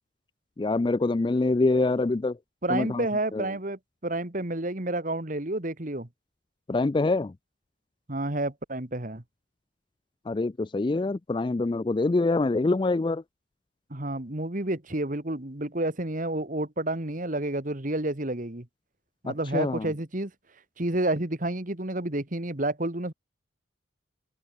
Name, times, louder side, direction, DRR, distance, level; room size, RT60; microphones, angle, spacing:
voice 1, 0.6-2.4 2.7-3.1 3.3-3.5 6.7-7.3 10.3-13.2 19.3-19.9, left 3 dB, 25° left, 0.3 m, -25 dB
voice 2, 2.6-6.1 8.1-9.2 13.9-18.7 19.2-20.3 20.8-23.1, right 1 dB, 40° right, 1.9 m, -30 dB
head